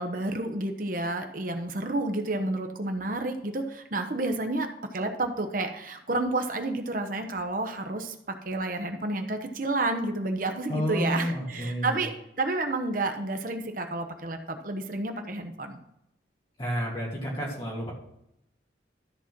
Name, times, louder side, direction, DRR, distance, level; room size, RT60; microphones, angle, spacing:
voice 1, 0.0-12.1 12.4-15.8, right 2 dB, 50° right, 5 dB, 1.1 m, -30 dB
voice 2, 10.7-12.0 16.6-17.9, equal, 30° left, -5 dB, 2.5 m, -30 dB
13.0 x 4.4 x 6.0 m, 0.78 s
head